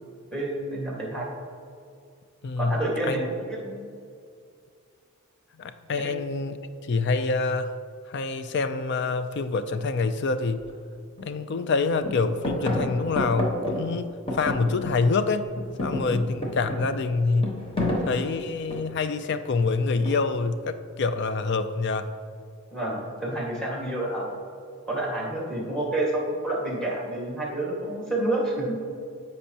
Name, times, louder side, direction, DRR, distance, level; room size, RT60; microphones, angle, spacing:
voice 1, 0.3-1.3 2.6-3.9 6.0-6.2 22.7-24.4 24.9-28.7, right 1 dB, 5° left, -4 dB, 1.7 m, -29 dB
voice 2, 2.4-2.8 3.1-3.2 5.6-7.7 8.1-10.6 11.2-15.4 15.8-17.5 18.1-22.1, left 4 dB, 55° left, 10 dB, 0.4 m, -26 dB
sound 1, 10.6-10.7 11.2-11.7 12.0-15.2 15.5-19.1 20.0-20.5, left 1 dB, 25° left, 1.1 m, -31 dB
13.5 x 5.3 x 2.9 m, 2.3 s
head